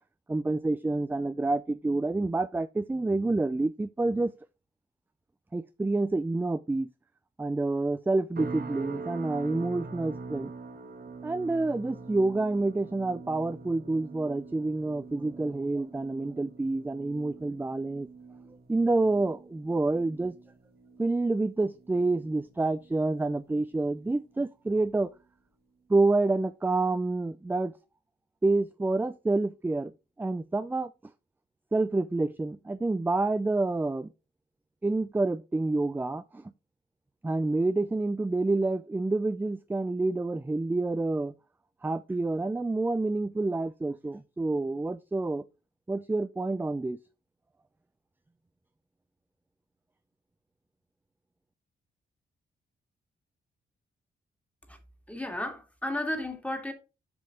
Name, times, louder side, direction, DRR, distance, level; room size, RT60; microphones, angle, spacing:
voice 1, 0.3-4.3 5.5-6.9 7.4-10.5 11.2-18.1 18.7-20.3 21.0-25.1 25.9-27.7 28.4-29.9 30.2-30.9 31.7-34.1 34.8-36.5 37.2-41.3 41.8-45.4 45.9-47.0, right 2 dB, 10° right, 0.4 m, -28 dB
sound 1, 8.4-23.6 23.9-24.3 24.8-25.0, right 4 dB, 60° right, 1.5 m, -44 dB
voice 2, 55.1-56.7, left 1 dB, 5° left, 1.9 m, -33 dB
7.6 x 5.3 x 3.7 m
cardioid pair, 80°, 18 cm